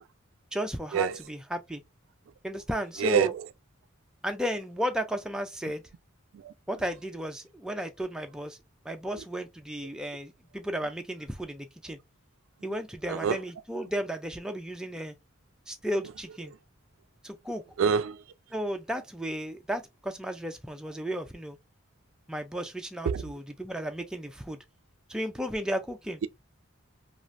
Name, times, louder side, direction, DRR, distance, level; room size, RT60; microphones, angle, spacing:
voice 1, 0.5-1.8 2.4-3.3 4.2-5.8 6.7-8.6 8.8-12.0 12.6-15.1 15.7-16.5 17.2-17.6 18.5-21.6 22.3-24.6 25.1-26.2, equal, 5° right, 0.4 m, -34 dB
voice 2, 3.0-3.5 6.3-6.5 13.1-13.4 17.8-18.2 23.0-23.2, right 7 dB, 80° right, 0.3 m, -26 dB
3.2 x 2.5 x 2.5 m
head